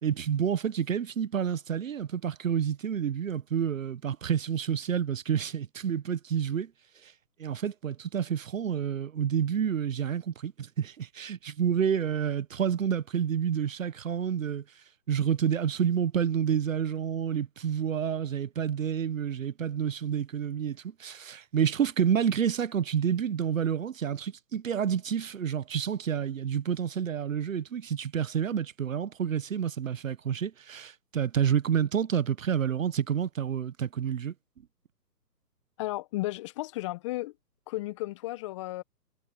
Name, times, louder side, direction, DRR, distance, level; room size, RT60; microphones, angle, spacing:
voice 1, 0.0-6.7 7.0-7.1 7.4-14.6 15.1-34.3, right 8 dB, 50° right, 1.3 m, -29 dB
voice 2, 35.8-37.3 37.7-38.8, left 18 dB, 20° left, 1.2 m, -34 dB
figure-of-eight pair, 145°, 50 cm